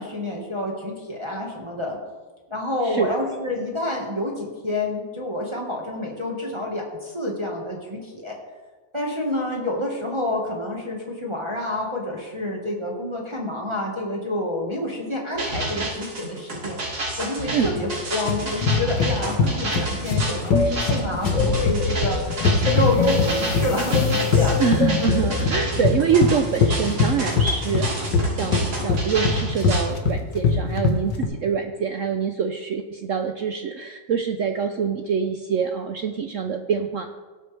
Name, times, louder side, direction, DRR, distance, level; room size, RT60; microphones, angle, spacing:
voice 1, 0.0-2.0 2.5-8.4 8.9-16.8 17.2-24.6, left 1 dB, 15° right, -1 dB, 1.4 m, -28 dB
sound 1, 15.3-29.8, right 1 dB, 55° right, 3.1 m, -30 dB
sound 2, 18.3-31.3, left 5 dB, 70° left, 1.7 m, -22 dB
sound 3, 20.5-25.7, left 4 dB, 45° left, 1.5 m, -25 dB
voice 2, 24.6-37.1, right 6 dB, 75° right, 6 dB, 0.7 m, -25 dB
18.0 x 7.6 x 3.4 m, 1.3 s
omnidirectional pair, 2.1 m